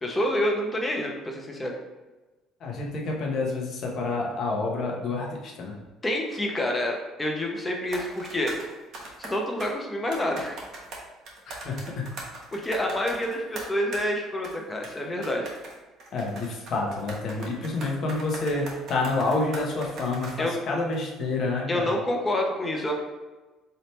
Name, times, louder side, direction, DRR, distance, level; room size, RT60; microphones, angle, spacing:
voice 1, 0.0-1.7 6.0-8.5 9.2-10.6 12.5-15.5 17.7-17.8 20.4-20.6 21.7-22.9, left 1 dB, 20° left, 1 dB, 1.0 m, -28 dB
voice 2, 2.6-5.7 11.5-12.1 16.1-21.9, left 3 dB, 55° left, -1 dB, 1.1 m, -28 dB
sound 1, 7.8-9.7 10.1-14.1 14.4-14.6 14.8-15.0 15.2-20.5 20.9-21.0, right 2 dB, 55° right, 1.2 m, -40 dB
3.4 x 2.7 x 4.4 m, 1.2 s
hypercardioid pair, 65°, 0 cm